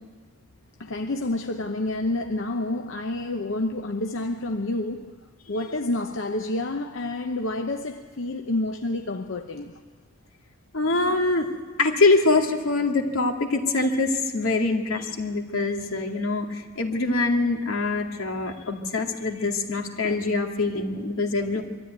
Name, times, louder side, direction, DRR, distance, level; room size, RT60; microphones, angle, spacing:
voice 1, 0.8-5.1 5.5-9.7, left 2 dB, 65° left, 0.8 m, -29 dB
voice 2, 10.7-11.5 11.8-21.6, left 3 dB, 85° left, 2.3 m, -24 dB
23.0 x 13.5 x 9.3 m
head